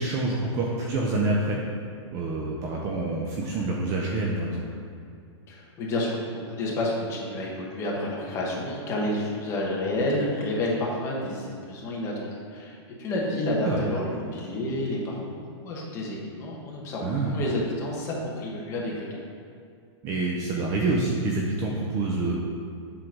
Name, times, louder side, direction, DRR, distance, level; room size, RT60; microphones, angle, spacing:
voice 1, 0.0-1.6 2.1-4.6 13.6-13.9 17.0-17.4 20.0-22.4, right 2 dB, 20° right, -2 dB, 0.5 m, -27 dB
voice 2, 5.5-19.1, left 1 dB, 20° left, -3 dB, 1.2 m, -30 dB
7.7 x 3.9 x 5.9 m, 2.4 s
supercardioid pair, 170°, 15 cm